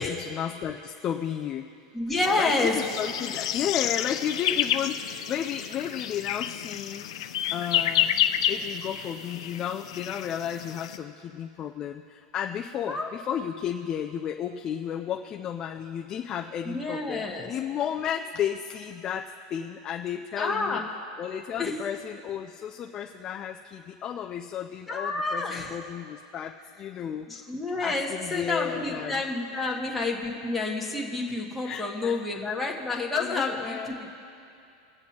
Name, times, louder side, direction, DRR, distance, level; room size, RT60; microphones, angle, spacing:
voice 1, 0.0-1.7 2.4-7.1 7.5-8.1 8.5-20.8 21.2-27.3 27.8-29.2 31.6-32.2 33.1-33.9, left 9 dB, 25° left, 2 dB, 0.3 m, -33 dB
voice 2, 1.9-2.7 12.9-13.1 16.6-17.5 20.4-20.8 21.6-21.7 24.9-25.8 27.3-34.1, left 3 dB, 5° left, -3 dB, 1.2 m, -29 dB
sound 1, 2.2-11.0, left 10 dB, 80° left, 0.6 m, -30 dB
23.0 x 7.9 x 2.8 m, 2.6 s
supercardioid pair, 170°, 3 cm